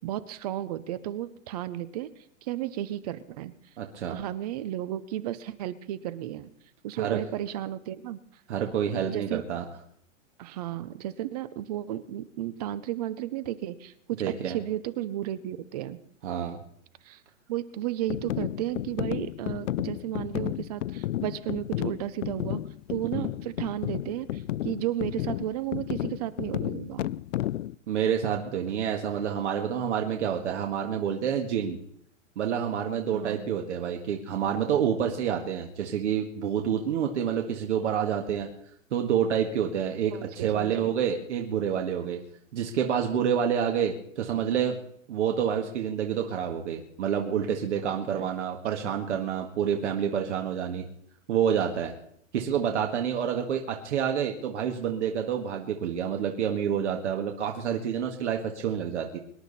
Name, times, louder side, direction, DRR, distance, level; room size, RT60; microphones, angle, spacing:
voice 1, 0.0-2.1 2.4-3.5 4.1-6.5 6.8-8.2 9.1-9.4 10.4-16.0 17.0-17.2 17.5-22.6 22.9-27.1 33.1-33.5 40.1-40.9 48.1-48.3, right 13 dB, 30° right, 16 dB, 0.7 m, -33 dB
voice 2, 3.8-4.2 7.0-7.2 8.5-9.7 14.2-14.6 16.2-16.6 23.2-23.3 27.9-31.8 32.4-38.5 38.9-42.2 42.5-44.8 45.1-50.8 51.3-51.9 52.3-59.2, right 8 dB, 60° right, 2 dB, 2.0 m, -28 dB
sound 1, 18.1-27.8, left 13 dB, 70° left, 0.6 m, -32 dB
24.5 x 11.0 x 4.2 m, 0.69 s
hypercardioid pair, 155°, 38 cm